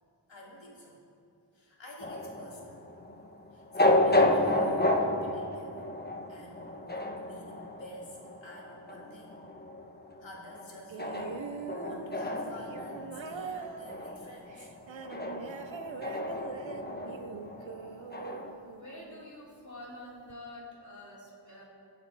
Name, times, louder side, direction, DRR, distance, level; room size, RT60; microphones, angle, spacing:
voice 1, 0.3-1.0 1.5-2.8 3.5-5.7 6.3-9.4 10.2-14.7, left 1 dB, 90° left, -4 dB, 3.0 m, -49 dB
sound 1, 2.0-18.5, left 1 dB, 20° left, 1.2 m, -31 dB
sound 2, 10.9-19.3 20.3-20.4, right 5 dB, 90° right, 0.8 m, -43 dB
voice 2, 18.8-21.7, left 1 dB, 40° left, -5 dB, 3.8 m, -47 dB
24.0 x 8.1 x 4.1 m, 2.6 s
wide cardioid pair, 60°, 44 cm